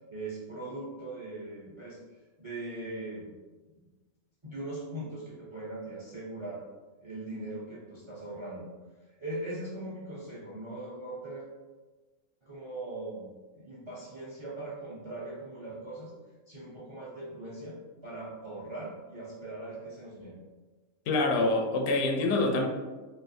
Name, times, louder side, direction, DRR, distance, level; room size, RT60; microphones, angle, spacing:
voice 1, 0.1-2.0 2.4-3.3 3.7-3.8 4.4-6.6 7.0-8.7 9.2-11.5 12.4-16.1 16.5-20.4, right 2 dB, 40° right, -6 dB, 0.4 m, -40 dB
voice 2, 21.1-22.7, left 2 dB, 80° left, 2 dB, 1.0 m, -26 dB
4.1 x 2.3 x 2.6 m, 1.3 s
omnidirectional pair, 1.4 m